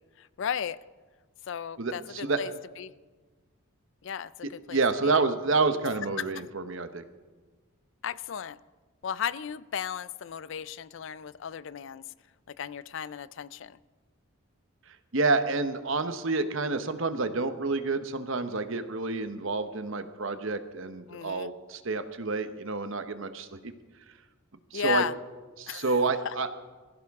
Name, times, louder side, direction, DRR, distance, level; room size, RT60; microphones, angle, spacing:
voice 1, 0.2-0.8 1.5-2.9 4.0-5.2 6.2-6.3 8.0-8.6 9.0-12.0 12.5-13.8 21.1-21.5 24.7-25.1 25.7-25.9 26.2-26.3, left 8 dB, 55° left, 18 dB, 0.4 m, -35 dB
voice 2, 1.8-2.4 4.7-7.0 15.1-23.7 24.7-25.0 25.6-26.5, right 3 dB, 60° right, 10 dB, 0.9 m, -28 dB
21.5 x 15.0 x 3.6 m, 1.4 s
head